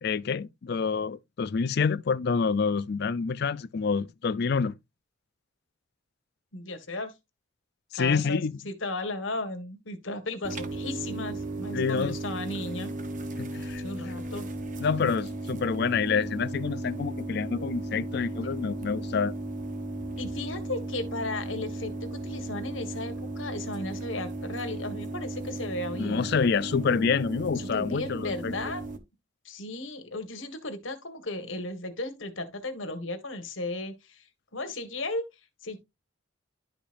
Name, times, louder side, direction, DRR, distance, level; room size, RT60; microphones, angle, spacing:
voice 1, 0.0-4.7 7.9-8.6 11.7-12.2 13.4-13.8 14.8-19.3 26.0-28.5, left 5 dB, 55° left, 0.4 m, -27 dB
voice 2, 6.5-7.1 8.0-12.9 13.8-14.5 18.4-18.6 20.2-26.3 27.7-28.8 29.4-34.2 34.5-35.2 35.6-35.8, left 2 dB, 80° left, 1.6 m, -35 dB
sound 1, 10.4-29.0, right 1 dB, 40° right, 1.0 m, -36 dB
11.5 x 5.1 x 2.5 m
head